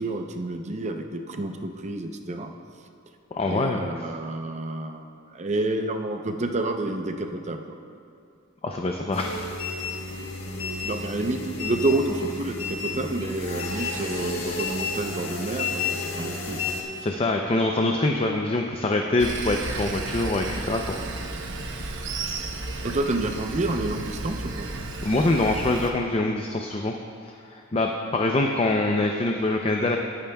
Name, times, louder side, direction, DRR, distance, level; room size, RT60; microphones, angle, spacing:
voice 1, 0.0-2.5 3.4-5.0 5.3-7.6 10.8-17.0 22.8-24.7, right 2 dB, 35° right, 5 dB, 0.7 m, -29 dB
voice 2, 3.3-3.9 8.6-9.4 17.0-21.0 21.4-21.7 25.0-26.9 27.2-30.0, left 2 dB, 30° left, 2 dB, 0.5 m, -25 dB
sound 1, 9.1-16.8, left 4 dB, 75° left, 1.4 m, -31 dB
Sawing, 19.2-25.9, right 3 dB, 65° right, 0.9 m, -33 dB
20.0 x 8.9 x 2.3 m, 2.5 s
head